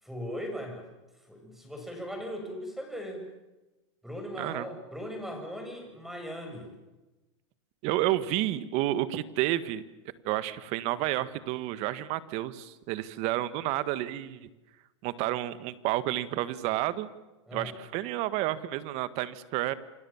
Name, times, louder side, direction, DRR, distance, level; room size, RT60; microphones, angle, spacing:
voice 1, 0.0-0.9 1.3-3.2 4.0-6.7 17.5-17.8, equal, ahead, 4 dB, 7.3 m, -38 dB
voice 2, 7.8-9.8 10.3-14.5 15.0-17.1 17.5-19.7, right 15 dB, 45° right, 14 dB, 1.7 m, -30 dB
28.5 x 24.5 x 7.3 m, 1.0 s
hypercardioid pair, 135°, 15 cm